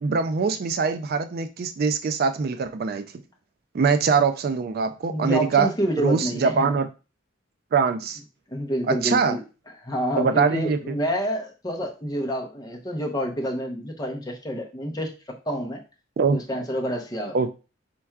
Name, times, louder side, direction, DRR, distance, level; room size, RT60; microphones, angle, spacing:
voice 1, 0.0-3.0 3.7-5.7 6.0-6.9 7.7-8.2 8.9-9.4 10.2-10.8 16.2-16.4 17.3-17.5, right 5 dB, 50° right, 9 dB, 0.3 m, -23 dB
voice 2, 5.1-6.7 8.5-9.4 9.8-15.8 16.3-17.4, equal, 20° left, 1 dB, 0.8 m, -28 dB
4.5 x 4.3 x 2.3 m, 0.31 s
head